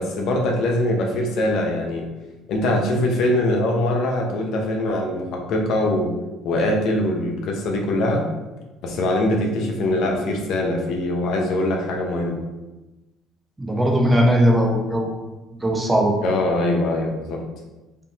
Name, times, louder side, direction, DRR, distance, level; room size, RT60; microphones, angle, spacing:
voice 1, 0.0-2.1 2.5-6.1 6.4-8.2 8.8-12.4 16.2-17.4, left 1 dB, 65° left, 1 dB, 0.9 m, -22 dB
voice 2, 13.6-15.3 15.6-16.1, equal, 15° right, 0 dB, 0.9 m, -19 dB
5.2 x 3.4 x 2.9 m, 1.1 s
cardioid pair, 110°, 0 cm